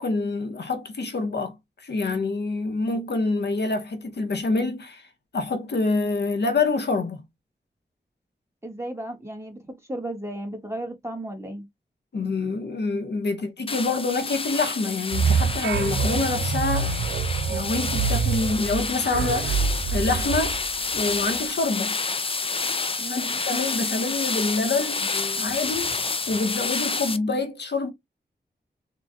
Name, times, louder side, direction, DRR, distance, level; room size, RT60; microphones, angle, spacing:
voice 1, 0.0-1.5 1.8-5.1 5.3-7.2 12.1-17.0 17.5-20.6 20.9-21.9 23.1-26.0 26.3-27.9, left 3 dB, 70° left, 0.9 m, -26 dB
voice 2, 8.6-9.6 9.9-11.7 23.0-23.4, right 1 dB, 15° right, 1.4 m, -34 dB
sound 1, 13.7-27.2, left 4 dB, 30° left, 0.4 m, -29 dB
sound 2, 15.1-21.3, right 6 dB, 80° right, 0.5 m, -26 dB
3.9 x 2.2 x 3.2 m
wide cardioid pair, 80°, 18 cm